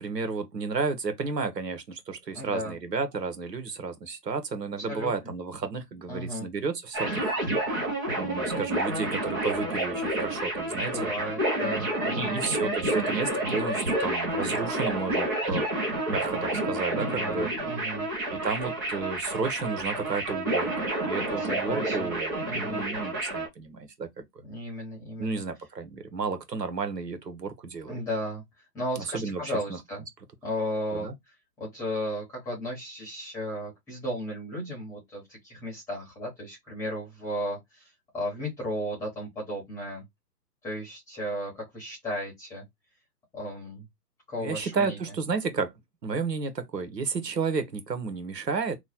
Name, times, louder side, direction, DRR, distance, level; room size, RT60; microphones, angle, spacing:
voice 1, 0.0-7.3 8.2-11.1 12.1-15.7 16.1-17.5 18.3-24.2 25.2-28.0 29.1-29.4 29.7-29.8 30.9-31.1 44.4-45.7 46.0-48.8, right 4 dB, 80° right, 1.2 m, -32 dB
voice 2, 2.3-2.7 4.9-5.1 6.1-6.5 10.7-12.4 16.9-18.1 21.4-22.1 22.5-22.8 24.4-25.4 27.9-28.4 28.7-30.0 30.4-31.1 31.6-40.0 40.6-42.6 43.3-43.9 44.3-45.0, equal, 5° left, 1.0 m, -34 dB
sound 1, 6.9-23.5, right 1 dB, 15° right, 0.5 m, -29 dB
3.1 x 2.2 x 4.2 m
figure-of-eight pair, 130°, 49 cm